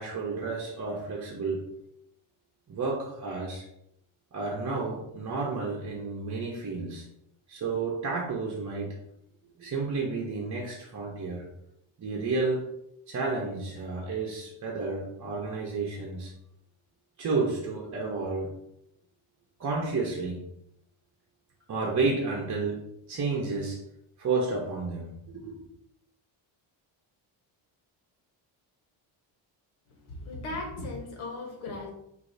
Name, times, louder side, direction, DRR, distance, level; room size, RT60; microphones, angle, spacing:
voice 1, 0.0-1.7 2.7-3.7 4.3-7.1 7.5-9.0 9.6-11.5 12.0-12.7 13.1-16.3 17.2-18.6 19.6-20.4 21.7-22.8 23.1-23.8 24.2-25.6, right 3 dB, 35° right, -3 dB, 0.8 m, -31 dB
voice 2, 29.9-31.9, left 2 dB, 80° left, 2 dB, 1.4 m, -37 dB
6.4 x 2.7 x 2.7 m, 0.77 s
cardioid pair, 125°, 48 cm